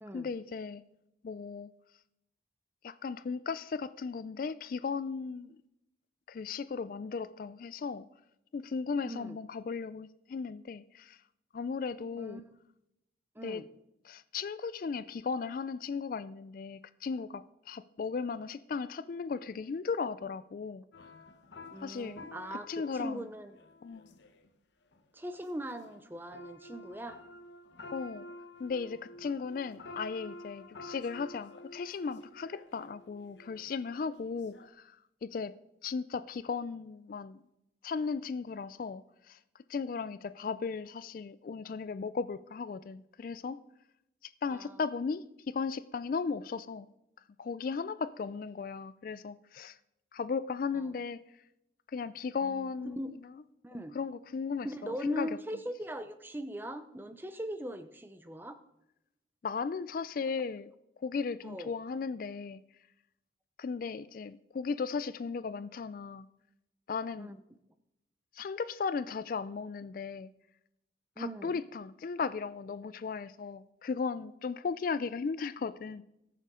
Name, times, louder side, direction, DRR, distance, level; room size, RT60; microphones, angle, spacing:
voice 1, 0.1-0.8 1.2-1.7 2.8-5.5 6.3-8.1 8.5-11.2 11.5-12.4 13.4-13.6 14.0-20.8 21.8-22.2 22.7-23.2 23.8-24.1 27.9-28.3 28.6-35.0 35.2-35.5 35.8-37.4 37.8-39.0 39.3-39.4 39.7-43.6 44.4-46.9 47.4-49.8 50.1-51.2 51.9-53.0 53.9-55.3 59.4-60.7 61.0-62.6 63.6-66.3 66.9-67.3 68.3-70.3 71.2-76.0, left 5 dB, 45° left, 0.3 m, -36 dB
voice 2, 9.0-9.4 12.2-12.4 13.4-13.7 21.7-22.7 22.9-23.6 25.1-27.2 44.5-44.8 50.7-50.9 52.4-52.7 52.9-53.1 53.6-54.0 54.6-58.6 61.4-61.7 67.2-67.4 71.2-71.6, right 1 dB, 10° right, 0.6 m, -40 dB
sound 1, 20.9-24.5 24.9-25.0 25.4-34.7, left 2 dB, 70° left, 0.9 m, -50 dB
19.0 x 6.7 x 3.7 m
head